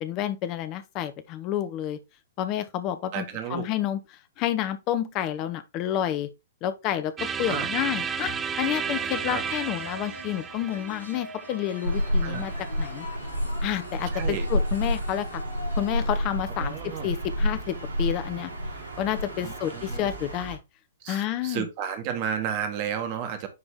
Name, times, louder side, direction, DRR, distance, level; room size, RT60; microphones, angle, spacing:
voice 1, 0.0-2.0 2.4-3.2 3.5-6.3 6.6-12.5 12.8-13.1 13.6-15.4 15.8-18.5 19.0-20.6 21.1-21.7, left 11 dB, 35° left, 1.0 m, -30 dB
voice 2, 3.1-3.7 7.5-7.7 9.3-9.4 12.2-12.5 14.1-14.5 16.6-17.1 19.4-20.1 21.0-23.5, right 8 dB, 40° right, 1.6 m, -32 dB
sound 1, 7.2-13.1, right 6 dB, 20° right, 0.6 m, -33 dB
sound 2, 8.4-16.2, left 2 dB, 80° left, 3.6 m, -44 dB
sound 3, 11.8-20.6, equal, 75° right, 3.7 m, -30 dB
9.7 x 3.4 x 3.6 m
figure-of-eight pair, 110°, 0 cm